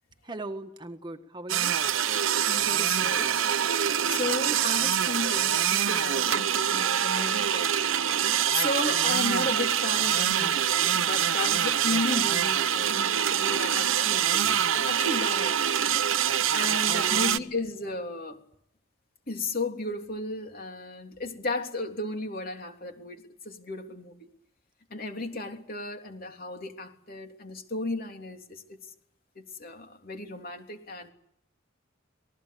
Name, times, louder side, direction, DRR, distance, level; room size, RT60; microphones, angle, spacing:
voice 1, 0.2-1.8 8.9-9.4 10.4-10.5 14.3-14.7 16.8-17.5, right 2 dB, 25° right, 1.6 m, -40 dB
sound 1, 1.5-17.4, right 9 dB, 90° right, 0.9 m, -25 dB
voice 2, 2.4-3.4 4.1-7.9 8.5-14.4 14.7-15.7 16.5-18.4 19.3-24.1 24.9-28.8 29.3-31.1, left 2 dB, 50° left, 3.3 m, -34 dB
27.5 x 20.0 x 8.5 m
head